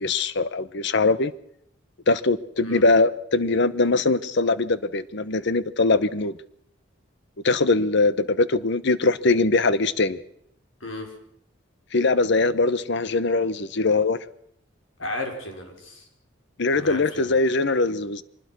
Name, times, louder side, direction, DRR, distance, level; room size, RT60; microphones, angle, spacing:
voice 1, 0.0-1.3 2.1-6.3 7.4-10.2 11.9-14.2 16.6-18.2, left 3 dB, 65° left, 16 dB, 1.0 m, -22 dB
voice 2, 10.8-11.1 15.0-16.1 16.7-17.4, left 2 dB, 90° left, 3 dB, 5.5 m, -34 dB
24.5 x 20.0 x 6.2 m, 0.70 s
head